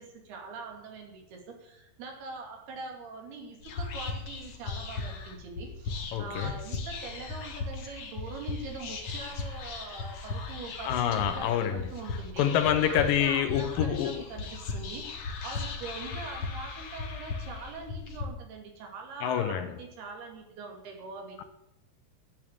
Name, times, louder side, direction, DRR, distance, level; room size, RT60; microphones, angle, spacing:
voice 1, 0.0-12.5 12.9-15.1 15.4-21.4, right 4 dB, 80° right, 4.6 m, -43 dB
Whispering, 3.6-18.2, left 4 dB, 50° left, 1.9 m, -37 dB
voice 2, 6.1-6.5 10.8-11.9 12.4-14.2 19.2-19.8 21.4-21.5, left 9 dB, 75° left, 2.3 m, -27 dB
11.0 x 9.7 x 8.7 m
omnidirectional pair, 4.5 m